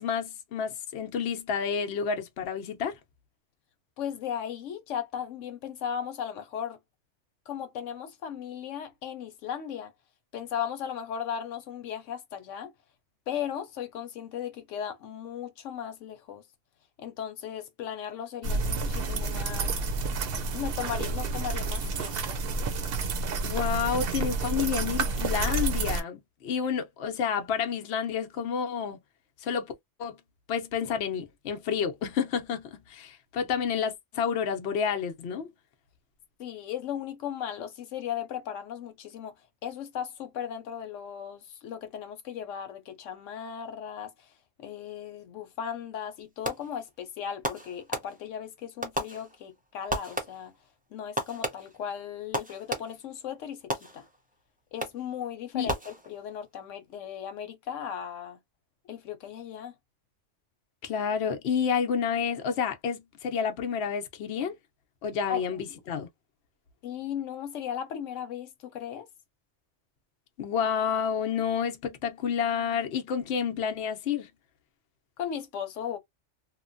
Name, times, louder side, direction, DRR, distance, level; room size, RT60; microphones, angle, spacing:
voice 1, 0.0-3.0 23.4-29.0 29.4-29.7 30.0-30.2 30.5-35.5 55.5-55.7 60.8-64.5 65.0-66.1 70.4-74.3, left 7 dB, 65° left, 0.9 m, -29 dB
voice 2, 4.0-6.8 7.5-9.9 10.3-12.7 13.3-16.4 17.0-19.7 20.5-22.4 36.4-39.3 39.6-44.3 44.6-50.5 50.9-54.0 54.7-58.4 58.9-59.7 65.3-65.8 66.8-69.1 75.2-76.0, left 9 dB, 90° left, 1.0 m, -36 dB
sound 1, 18.4-26.0, right 3 dB, 60° right, 0.8 m, -29 dB
Fireworks, 46.4-46.9 47.4-48.4 48.8-49.6 49.9-50.6 51.2-53.1 53.7-54.3 54.8-55.2 55.7-56.4, equal, 10° right, 0.4 m, -35 dB
3.0 x 2.1 x 2.5 m
omnidirectional pair, 1.2 m